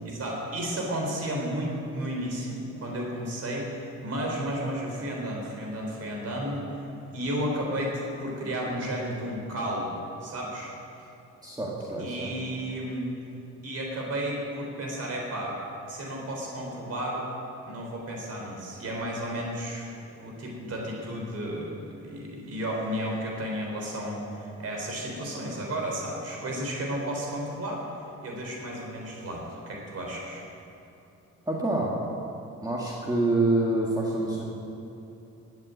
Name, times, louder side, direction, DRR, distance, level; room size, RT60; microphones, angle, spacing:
voice 1, 0.0-6.8 7.1-11.1 12.0-13.1 13.6-15.6 15.9-17.3 17.7-27.8 28.2-30.4, right 1 dB, 55° right, -1 dB, 3.8 m, -33 dB
voice 2, 11.4-12.4 31.5-32.0 32.6-34.4, right 2 dB, 15° right, -4 dB, 2.0 m, -26 dB
13.5 x 8.2 x 9.4 m, 2.8 s
cardioid pair, 90°, 30 cm